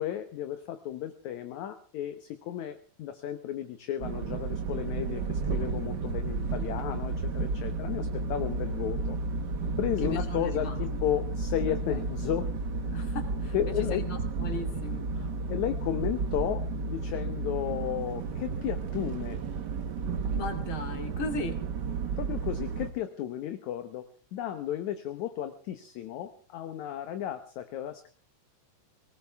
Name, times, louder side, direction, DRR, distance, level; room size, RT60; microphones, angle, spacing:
voice 1, 0.0-9.2 9.8-12.5 13.5-14.1 15.5-19.4 22.2-28.1, left 11 dB, 70° left, 8 dB, 2.2 m, -33 dB
sound 1, 4.0-22.9, right 4 dB, 80° right, 0.9 m, -32 dB
voice 2, 10.0-10.8 12.8-15.3 20.3-21.6, left 2 dB, 40° left, 5 dB, 2.9 m, -37 dB
21.0 x 19.0 x 3.5 m, 0.39 s
omnidirectional pair, 3.8 m